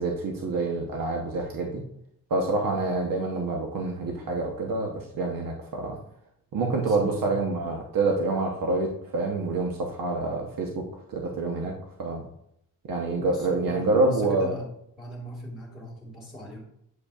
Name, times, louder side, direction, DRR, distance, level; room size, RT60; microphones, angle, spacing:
voice 1, 0.0-1.8 2.3-6.0 6.5-10.8 11.1-11.7 12.0-12.2 12.9-14.5, right 3 dB, 70° right, 1 dB, 1.1 m, -27 dB
voice 2, 6.7-7.5 13.2-14.7 15.0-16.6, left 1 dB, ahead, -3 dB, 2.1 m, -40 dB
8.3 x 5.1 x 2.5 m, 0.74 s
cardioid pair, 110°, 35 cm